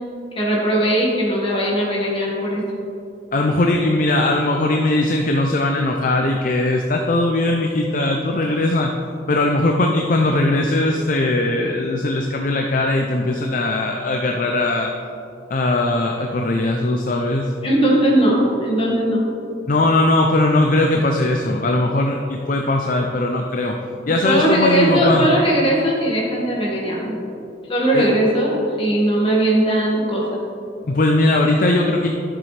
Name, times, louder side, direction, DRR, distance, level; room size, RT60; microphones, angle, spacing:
voice 1, 0.3-2.6 17.6-19.2 24.2-27.1 27.7-30.2, right 1 dB, 30° left, -4 dB, 1.8 m, -19 dB
voice 2, 3.3-8.9 9.3-14.9 15.5-17.5 19.7-23.8 24.1-25.3 27.9-28.1 30.9-32.1, left 2 dB, 45° left, 2 dB, 0.5 m, -19 dB
12.0 x 7.5 x 3.3 m, 2.7 s
head